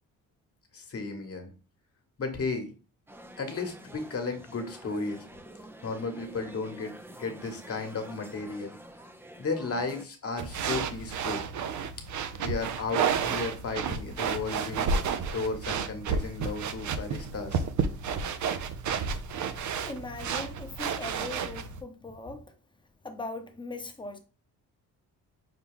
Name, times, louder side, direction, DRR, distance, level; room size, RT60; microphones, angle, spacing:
voice 1, 0.7-1.5 2.2-2.7 3.4-5.3 5.8-8.8 9.4-11.4 12.4-14.9 15.3-17.6, left 4 dB, 40° left, 1.3 m, -34 dB
sound 1, 3.1-10.1, right 1 dB, 5° right, 0.5 m, -48 dB
sound 2, 10.4-21.8, right 6 dB, 55° right, 0.6 m, -31 dB
voice 2, 19.8-22.5 23.0-24.2, left 2 dB, 15° left, 0.9 m, -40 dB
5.9 x 2.3 x 3.5 m
cardioid pair, 85°, 36 cm